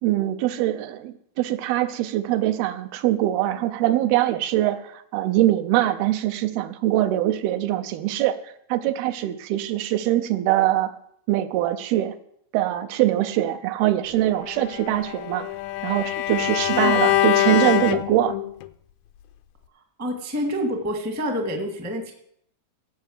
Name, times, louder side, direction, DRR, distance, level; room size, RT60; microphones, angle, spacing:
voice 1, 0.0-8.4 8.7-10.9 11.3-12.2 12.5-15.5 15.8-18.4, right 14 dB, 80° right, 9 dB, 2.6 m, -23 dB
Bowed string instrument, 14.5-18.7, left 13 dB, 80° left, 2.2 m, -24 dB
voice 2, 16.7-17.0 20.0-22.1, equal, 10° right, 3 dB, 0.6 m, -28 dB
16.0 x 5.6 x 7.9 m, 0.69 s
omnidirectional pair, 4.4 m